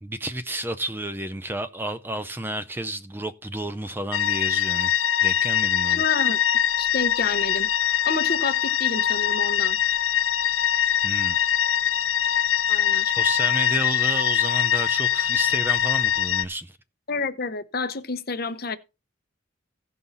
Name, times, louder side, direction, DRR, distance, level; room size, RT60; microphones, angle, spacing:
voice 1, 0.0-4.9 5.2-6.0 11.0-11.4 13.0-16.8, right 1 dB, 10° right, 0.4 m, -31 dB
sound 1, 4.1-16.4, left 10 dB, 75° left, 0.7 m, -23 dB
voice 2, 5.9-6.4 6.8-7.7 8.1-9.8 12.7-13.0 17.1-18.8, left 3 dB, 50° left, 0.9 m, -29 dB
16.5 x 5.6 x 4.0 m
head